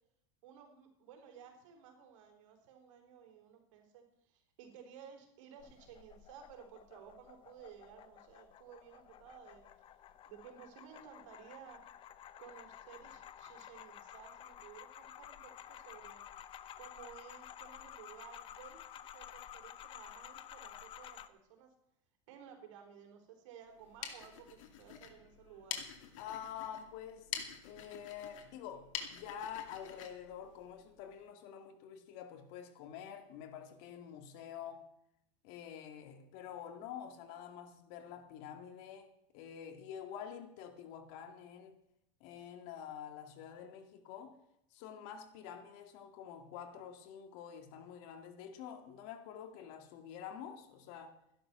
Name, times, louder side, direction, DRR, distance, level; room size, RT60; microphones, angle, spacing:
voice 1, 0.4-9.6 10.3-11.8 12.4-16.2 16.8-18.8 19.1-21.7 22.3-25.8, right 8 dB, 75° right, 4.1 m, -55 dB
sound 1, 5.6-21.3, left 10 dB, 30° left, 0.8 m, -53 dB
sound 2, 23.7-31.2, left 8 dB, 85° left, 2.5 m, -47 dB
voice 2, 26.2-27.4 27.6-34.9 35.4-41.8 42.2-44.4 44.7-51.2, left 8 dB, 60° left, 2.2 m, -48 dB
14.0 x 11.5 x 6.0 m
supercardioid pair, 140°, 16 cm